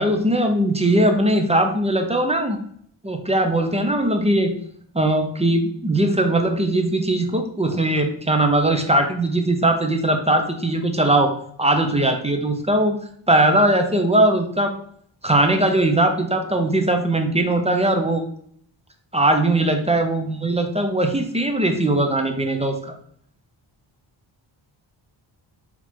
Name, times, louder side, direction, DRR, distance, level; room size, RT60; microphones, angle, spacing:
voice 1, 0.0-2.6 3.0-4.5 4.9-13.0 13.3-14.7 15.2-18.2 19.1-22.9, right 1 dB, 15° right, 5 dB, 0.6 m, -20 dB
4.7 x 2.9 x 3.6 m, 0.63 s
wide cardioid pair, 95°, 48 cm